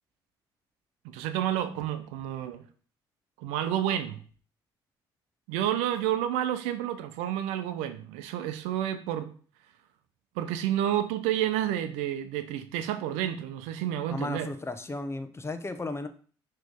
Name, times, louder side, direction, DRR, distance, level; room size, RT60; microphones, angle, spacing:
voice 1, 1.0-2.6 3.4-4.2 5.5-9.3 10.4-14.5, right 11 dB, 85° right, 0.6 m, -30 dB
voice 2, 14.1-16.1, left 2 dB, 25° left, 1.0 m, -34 dB
6.2 x 3.3 x 5.2 m
hypercardioid pair, 60°, 11 cm